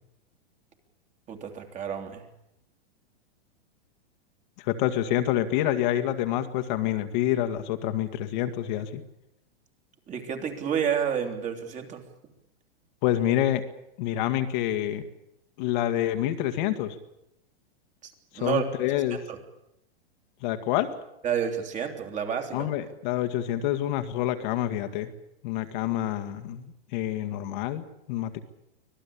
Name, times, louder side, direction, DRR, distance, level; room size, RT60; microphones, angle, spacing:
voice 1, 1.3-2.2 10.1-12.0 18.0-18.6 19.3-19.4 21.2-22.7, right 8 dB, 25° right, 5 dB, 3.2 m, -30 dB
voice 2, 4.6-9.0 13.0-13.6 14.0-15.1 15.6-17.0 18.3-19.2 20.4-21.0 22.5-25.1 25.4-28.4, left 12 dB, 50° left, 8 dB, 2.0 m, -27 dB
25.0 x 18.5 x 8.6 m, 0.84 s
hypercardioid pair, 145°, 31 cm